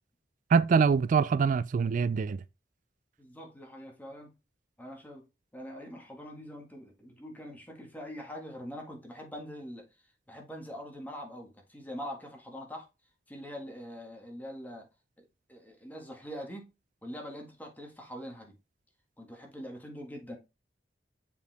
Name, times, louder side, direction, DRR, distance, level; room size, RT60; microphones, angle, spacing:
voice 1, 0.5-2.4, right 5 dB, 45° right, 0.3 m, -24 dB
voice 2, 3.2-4.3 4.8-5.3 5.5-12.9 13.3-14.9 15.2-16.7 17.0-18.5 19.2-20.4, equal, 10° left, 1.6 m, -43 dB
7.0 x 4.6 x 3.4 m
head